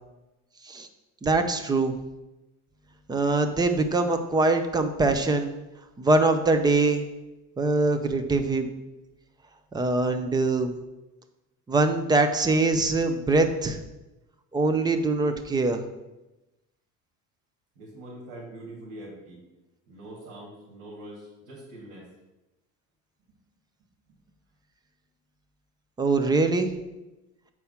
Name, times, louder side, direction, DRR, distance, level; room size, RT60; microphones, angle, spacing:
voice 1, 1.2-1.9 3.1-5.5 6.0-7.1 7.6-8.7 9.7-10.7 11.7-13.8 14.5-15.8 26.0-26.7, right 3 dB, 10° right, 7 dB, 0.5 m, -23 dB
voice 2, 17.7-19.4 19.9-22.1 24.1-24.2, right 1 dB, 75° right, -5 dB, 2.8 m, -43 dB
7.3 x 4.7 x 5.7 m, 1.0 s
cardioid pair, 150°, 33 cm